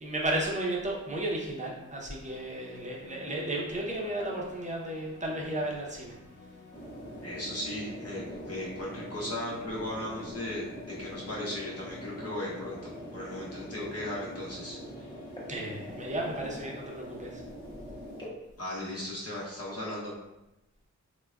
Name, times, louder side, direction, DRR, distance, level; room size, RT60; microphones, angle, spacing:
voice 1, 0.0-6.1 15.5-17.4, right 1 dB, 25° right, -2 dB, 0.6 m, -33 dB
sound 1, 2.2-16.1, left 2 dB, 85° left, 0.5 m, -52 dB
sound 2, 6.7-18.3, equal, 15° left, 0.8 m, -43 dB
voice 2, 7.2-15.1 18.6-20.1, left 1 dB, 55° left, -5 dB, 0.8 m, -37 dB
3.3 x 2.1 x 2.3 m, 0.95 s
wide cardioid pair, 80°, 30 cm